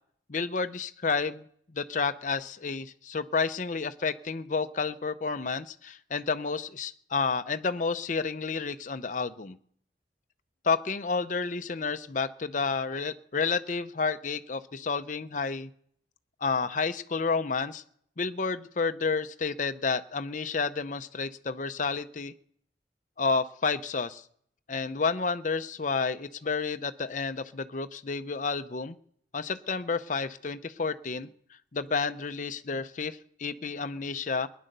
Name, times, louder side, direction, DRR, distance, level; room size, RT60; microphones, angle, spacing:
voice 1, 0.3-9.6 10.6-15.7 16.4-17.8 18.2-22.3 23.2-24.2 24.7-29.0 29.3-31.3 31.7-34.5, left 4 dB, 45° left, 10 dB, 0.6 m, -30 dB
19.5 x 10.5 x 6.7 m, 0.65 s
head